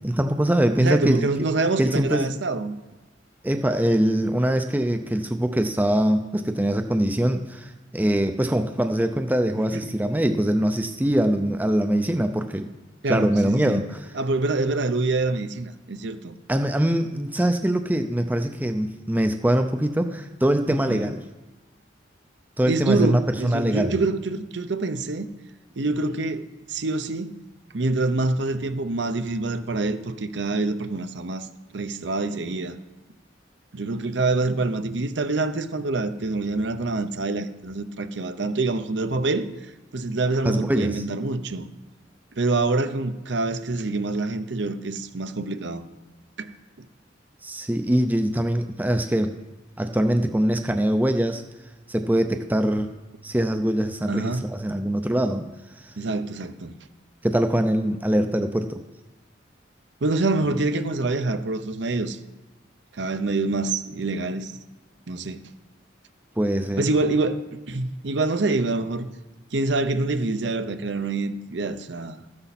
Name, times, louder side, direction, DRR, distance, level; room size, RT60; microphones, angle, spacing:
voice 1, 0.0-1.3 1.8-2.3 3.4-12.7 13.1-14.0 16.5-21.2 22.6-24.0 40.4-41.0 47.4-49.3 49.8-51.4 51.9-52.9 53.2-55.4 55.8-55.9 57.2-58.8 66.4-66.8, right 1 dB, 10° right, 7 dB, 0.5 m, -23 dB
voice 2, 0.8-2.8 9.7-9.9 13.0-13.9 14.1-16.4 20.9-21.1 22.7-25.3 25.8-27.3 27.7-31.5 31.7-32.8 33.7-39.5 39.9-41.7 42.4-45.8 46.4-46.5 54.1-54.5 56.0-56.7 60.0-62.2 62.9-64.6 65.1-65.4 66.8-69.1 69.5-72.2, right 3 dB, 65° right, 10 dB, 0.7 m, -26 dB
13.5 x 9.8 x 4.2 m, 1.2 s
head